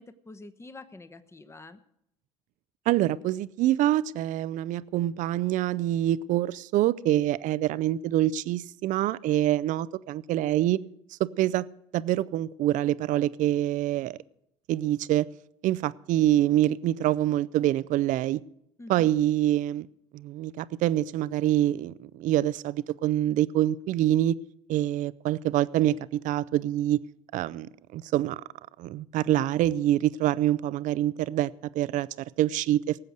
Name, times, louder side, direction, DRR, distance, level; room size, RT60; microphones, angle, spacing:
voice 1, 0.0-1.8 18.8-19.1, left 2 dB, 15° left, 1.1 m, -46 dB
voice 2, 2.9-10.8 11.2-11.7 11.9-14.2 14.7-15.3 15.6-18.4 18.9-19.9 20.1-24.4 24.7-27.0 27.3-28.4 28.8-32.1 32.4-33.0, right 13 dB, 55° right, 0.5 m, -25 dB
18.5 x 7.9 x 6.5 m
hypercardioid pair, 65°, 16 cm